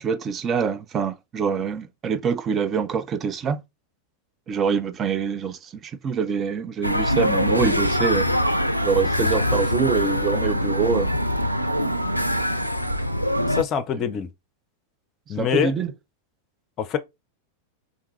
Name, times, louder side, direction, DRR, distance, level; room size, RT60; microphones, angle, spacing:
voice 1, 0.0-3.6 4.5-8.3 8.8-11.1 13.9-14.0 15.4-15.9, right 6 dB, 25° right, 0.4 m, -25 dB
Going to Sands Casino in Macao, 6.8-13.6, equal, 90° left, 0.3 m, -23 dB
voice 2, 13.5-14.3 15.3-15.7 16.8-17.0, left 8 dB, 35° left, 0.5 m, -24 dB
3.5 x 2.6 x 3.1 m
figure-of-eight pair, 90°, 0 cm